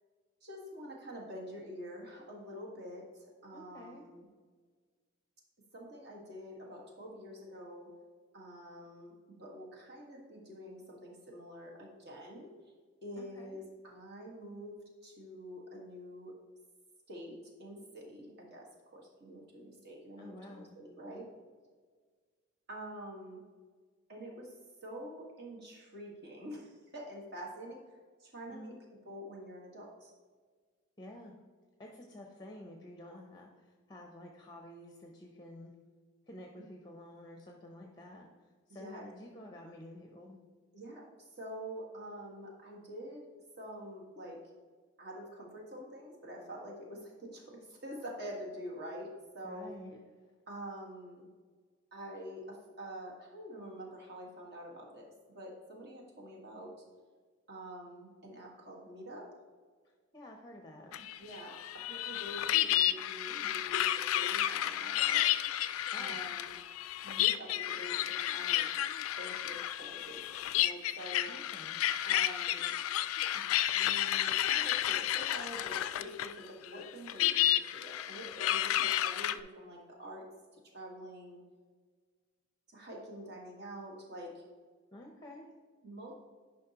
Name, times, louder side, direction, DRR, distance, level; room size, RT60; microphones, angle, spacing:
voice 1, 0.4-4.2 5.7-7.9 8.3-9.1 9.4-12.5 13.0-14.8 15.0-16.3 17.1-21.3 22.7-23.4 24.1-24.5 24.8-27.8 28.2-30.1 38.7-39.1 40.7-41.1 41.4-43.2 43.6-44.4 45.0-49.7 50.5-51.3 51.9-56.7 57.5-59.3 61.2-65.3 65.9-66.6 67.0-68.8 69.2-71.3 72.0-72.7 73.3-80.3 80.7-81.4 82.7-84.4 85.8-86.1, equal, 50° right, -2 dB, 1.7 m, -46 dB
voice 2, 3.5-4.1 13.2-13.6 20.2-20.8 28.5-28.8 31.0-31.3 31.8-35.7 36.3-40.4 49.4-50.1 60.1-61.1 65.9-66.2 71.3-71.8 84.9-85.5, left 1 dB, 20° left, 1 dB, 0.6 m, -50 dB
sound 1, 60.9-76.4 76.6-79.4, left 12 dB, 80° left, 0.3 m, -31 dB
10.0 x 5.3 x 2.9 m, 1.6 s
head